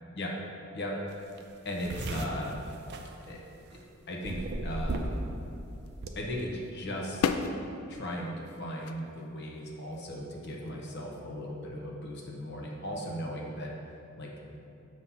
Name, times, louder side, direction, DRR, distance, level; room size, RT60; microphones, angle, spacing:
voice 1, 0.7-1.3 1.6-2.6 3.3-3.4 3.7-3.8 4.1-5.3 6.1-7.5 7.9-13.7 14.2-14.6, equal, 55° left, -1 dB, 0.9 m, -37 dB
sound 1, 1.1-1.2 1.4-3.8 4.2-5.3 5.6-6.1, right 2 dB, 50° right, 0.5 m, -35 dB
sound 2, 5.9-6.0 6.4-6.8 7.2-7.6 8.5-9.2 9.9-10.1 10.5-10.7, left 6 dB, 80° left, 0.3 m, -32 dB
6.9 x 3.1 x 5.6 m, 2.7 s
head